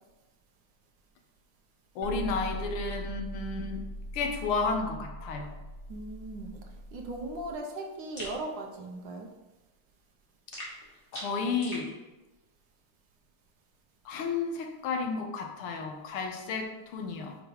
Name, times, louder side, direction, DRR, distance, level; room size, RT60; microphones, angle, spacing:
voice 1, 2.0-3.9 4.1-5.5 11.1-11.9 14.1-17.4, left 4 dB, 90° left, 3 dB, 1.8 m, -32 dB
sound 1, 2.0-7.5, equal, 70° left, 1.1 m, -41 dB
voice 2, 5.9-6.6 6.9-9.3, right 2 dB, 65° right, 2 dB, 1.4 m, -38 dB
sound 2, 8.2-8.4 10.5-11.9, equal, 25° left, 2.1 m, -41 dB
8.6 x 5.0 x 3.1 m, 1.1 s
omnidirectional pair, 2.3 m